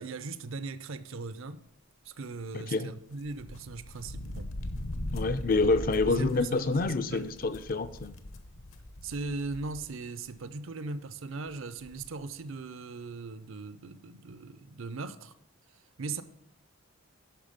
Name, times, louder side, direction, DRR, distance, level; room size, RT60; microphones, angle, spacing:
voice 1, 0.0-1.6 2.0-4.5 4.9-5.3 6.0-7.3 9.0-15.3 15.7-16.2, right 3 dB, 65° right, 0.6 m, -39 dB
sound 1, 3.2-9.9 10.3-10.4 11.5-11.6 11.8-12.1, left 1 dB, 70° left, 0.9 m, -40 dB
voice 2, 5.1-8.1, left 3 dB, 40° left, 0.4 m, -27 dB
10.5 x 5.9 x 5.0 m
head